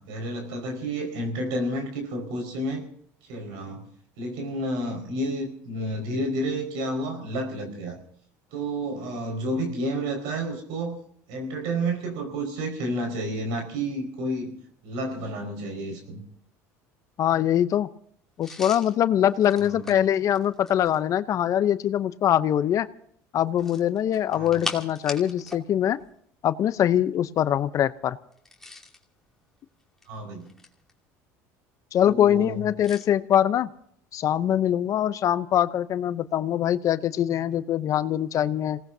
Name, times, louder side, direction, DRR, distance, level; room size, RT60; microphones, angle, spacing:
voice 1, 0.0-2.8 3.2-3.9 4.2-8.0 8.5-11.0 11.3-14.6 14.8-16.2 19.6-19.9 24.3-24.7 30.1-30.5 32.0-32.6, right 1 dB, 75° right, 3 dB, 4.9 m, -30 dB
voice 2, 17.2-17.9 18.4-22.9 23.3-26.0 26.4-28.2 31.9-33.7 34.1-38.8, left 10 dB, 50° left, 14 dB, 0.7 m, -23 dB
sound 1, 18.4-21.1 23.5-25.7 25.9-26.1 28.3-29.0 29.8-30.9 32.8-33.1, left 3 dB, 5° left, 2.7 m, -39 dB
28.0 x 18.0 x 2.7 m, 0.66 s
supercardioid pair, 100°, 7 cm